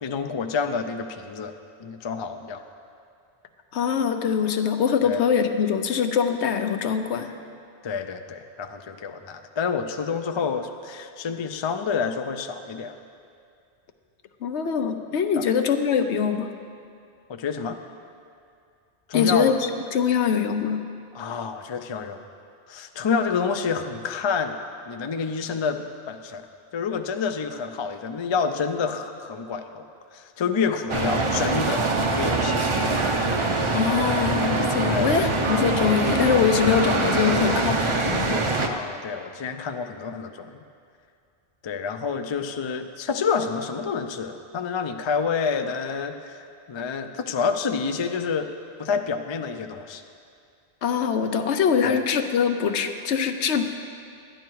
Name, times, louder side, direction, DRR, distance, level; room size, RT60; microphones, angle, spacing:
voice 1, 0.0-1.5 1.8-2.6 5.0-5.2 7.8-13.0 15.4-15.5 17.3-17.8 19.1-19.5 21.1-22.2 22.7-24.6 24.9-26.5 26.7-31.8 32.1-32.6 34.9-35.1 38.6-40.6 41.6-48.5 48.8-50.0 51.8-52.0, left 5 dB, 45° left, 7 dB, 0.4 m, -28 dB
voice 2, 3.7-7.3 14.4-16.5 19.1-19.5 19.9-20.9 33.7-38.5 50.8-53.7, left 7 dB, 85° left, 7 dB, 1.0 m, -23 dB
sound 1, 30.9-38.7, right 3 dB, 35° right, 0.6 m, -24 dB
11.5 x 10.5 x 4.6 m, 2.4 s
omnidirectional pair, 1.1 m